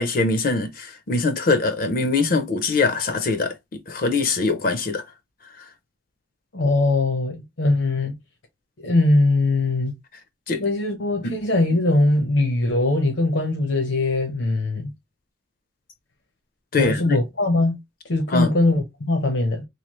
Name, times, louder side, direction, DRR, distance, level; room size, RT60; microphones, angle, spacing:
voice 1, 0.0-5.0 10.5-10.6 11.2-11.4 16.7-17.2 18.3-18.5, left 3 dB, 50° left, 0.5 m, -23 dB
voice 2, 6.5-8.2 8.8-9.9 10.6-14.9 16.7-17.8 18.1-19.7, left 2 dB, 85° left, 0.8 m, -21 dB
3.1 x 2.4 x 2.9 m
head